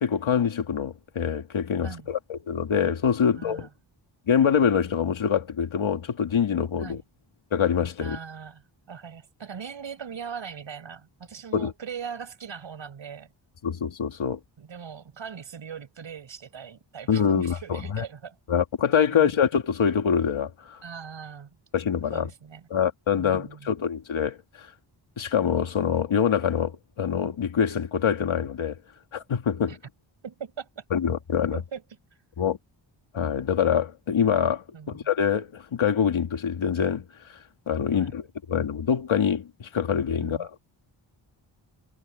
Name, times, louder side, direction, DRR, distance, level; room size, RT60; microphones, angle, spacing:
voice 1, 0.0-3.7 4.3-7.0 7.5-8.2 11.5-11.7 13.6-14.4 17.1-18.0 18.5-20.8 21.7-22.3 22.7-24.7 25.2-28.8 29.1-29.8 30.9-31.6 32.4-32.6 33.1-37.0 37.7-38.2 38.5-40.5, left 7 dB, 80° left, 2.5 m, -25 dB
voice 2, 3.2-3.7 6.8-7.0 8.0-13.3 14.6-18.4 19.1-19.4 20.8-21.5 22.1-22.7 23.2-23.7 29.7-29.8 30.2-30.8 31.5-31.8 32.1-32.2 34.7-35.0 37.9-38.1 40.2-40.5, right 7 dB, 70° right, 6.3 m, -40 dB
wide cardioid pair, 150°, 47 cm